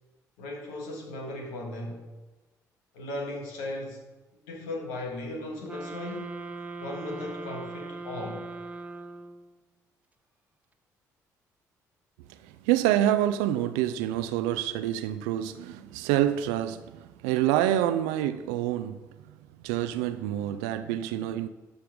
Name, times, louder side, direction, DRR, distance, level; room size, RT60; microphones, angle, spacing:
voice 1, 0.4-2.1 2.9-4.0 4.4-6.4 6.8-8.5, left 2 dB, 75° left, 1.8 m, -37 dB
sound 1, 5.7-9.5, right 3 dB, 15° right, 0.9 m, -40 dB
voice 2, 12.3-19.0 19.6-21.5, right 12 dB, 75° right, 0.5 m, -27 dB
12.5 x 5.7 x 4.9 m
figure-of-eight pair, 45°, 9 cm